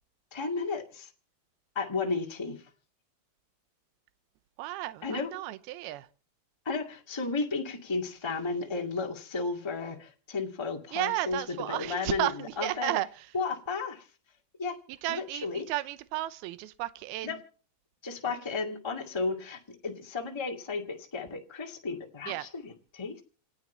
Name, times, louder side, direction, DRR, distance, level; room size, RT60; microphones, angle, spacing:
voice 1, 0.3-1.1 1.7-2.6 5.0-5.3 6.6-13.0 13.3-14.1 14.6-14.8 15.1-15.7 17.2-17.4 18.0-23.2, left 4 dB, 20° left, 0.6 m, -33 dB
voice 2, 4.6-6.1 10.9-13.1 15.0-17.3 22.3-22.5, right 16 dB, 80° right, 2.7 m, -33 dB
28.0 x 9.4 x 4.4 m
omnidirectional pair, 4.6 m